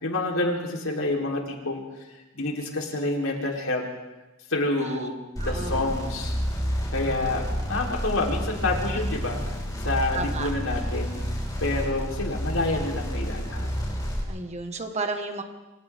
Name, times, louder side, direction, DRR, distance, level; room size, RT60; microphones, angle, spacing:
voice 1, 0.0-1.8 2.3-3.8 4.5-5.2 5.4-6.3 6.9-9.4 9.8-11.2 11.6-13.7, left 2 dB, 75° left, 0 dB, 4.1 m, -28 dB
voice 2, 4.8-5.1 5.4-5.9 9.2-9.3 10.1-10.5 14.3-15.4, right 3 dB, 30° right, 5 dB, 1.8 m, -33 dB
sound 1, 5.4-14.2, equal, 15° left, 5.2 m, -30 dB
27.5 x 26.0 x 3.8 m, 1.1 s
head